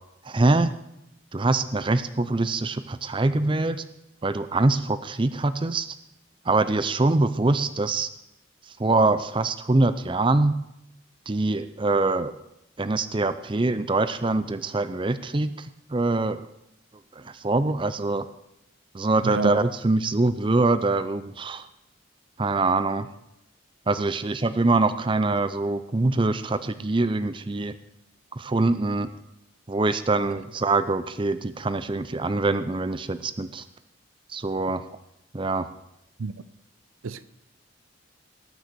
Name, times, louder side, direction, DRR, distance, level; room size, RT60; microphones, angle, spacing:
voice 1, 0.3-0.7 1.3-3.8 4.2-5.9 6.5-8.1 8.8-10.5 11.3-12.3 12.8-15.7 15.9-16.4 17.2-18.2 18.9-21.7 22.4-23.1 23.9-27.7 28.4-29.1 29.7-33.6 34.3-34.9 35.3-35.7, right 2 dB, 25° right, 0.5 m, -24 dB
voice 2, 19.2-19.6 36.2-36.4 37.0-37.3, right 4 dB, 80° right, 0.6 m, -28 dB
19.0 x 6.5 x 6.8 m
head